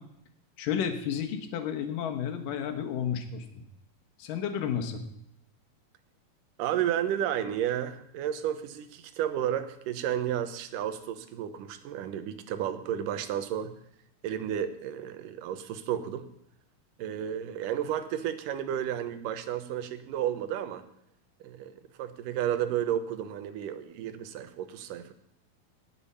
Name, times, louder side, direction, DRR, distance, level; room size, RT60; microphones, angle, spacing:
voice 1, 0.6-3.6 4.2-5.0, left 8 dB, 70° left, 6 dB, 2.8 m, -32 dB
voice 2, 6.6-13.7 14.2-16.3 17.0-20.8 21.4-25.1, right 10 dB, 75° right, 11 dB, 2.3 m, -32 dB
18.0 x 7.1 x 5.5 m, 0.76 s
omnidirectional pair, 4.2 m